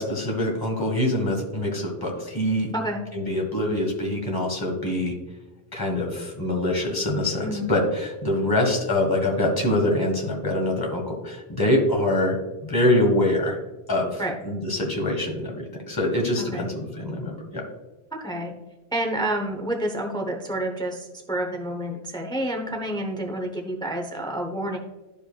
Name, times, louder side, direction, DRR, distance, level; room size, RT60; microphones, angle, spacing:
voice 1, 0.0-2.7 3.1-5.1 5.7-13.6 13.9-17.6, left 1 dB, 20° left, 0 dB, 1.5 m, -24 dB
voice 2, 16.4-16.7 18.1-18.5 18.9-24.8, right 1 dB, 5° left, 2 dB, 0.7 m, -29 dB
12.0 x 5.2 x 2.3 m, 1.1 s
omnidirectional pair, 1.1 m